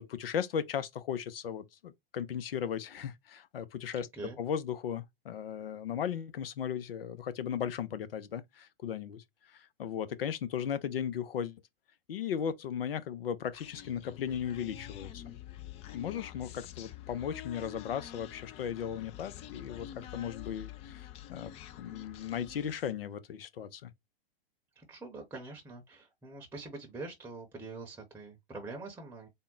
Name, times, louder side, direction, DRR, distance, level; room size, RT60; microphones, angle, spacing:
voice 1, 0.0-4.1 4.4-11.6 12.1-15.3 15.9-23.9, left 8 dB, 75° left, 0.7 m, -36 dB
Human voice, 13.5-23.0, left 12 dB, 20° left, 0.3 m, -47 dB
voice 2, 24.8-29.3, right 3 dB, 5° right, 0.8 m, -44 dB
3.6 x 2.1 x 3.7 m
hypercardioid pair, 110°, 29 cm